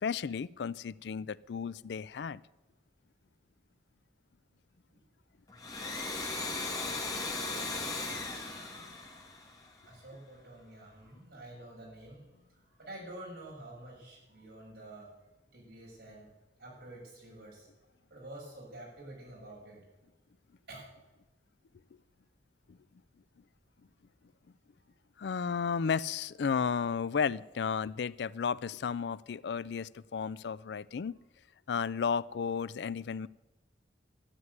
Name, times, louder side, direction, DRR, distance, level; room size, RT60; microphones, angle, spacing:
voice 1, 0.0-2.4 25.2-31.2 31.7-33.3, left 6 dB, 70° left, 19 dB, 0.4 m, -33 dB
Domestic sounds home sounds, 5.5-10.0, left 3 dB, 20° left, 2.4 m, -37 dB
voice 2, 8.5-9.2 9.8-12.2 12.6-15.1 15.5-16.3 16.6-17.7 18.1-19.8 20.7-20.9 24.8-24.9, right 1 dB, 65° right, -3 dB, 6.7 m, -49 dB
12.5 x 9.4 x 9.6 m, 1.1 s
head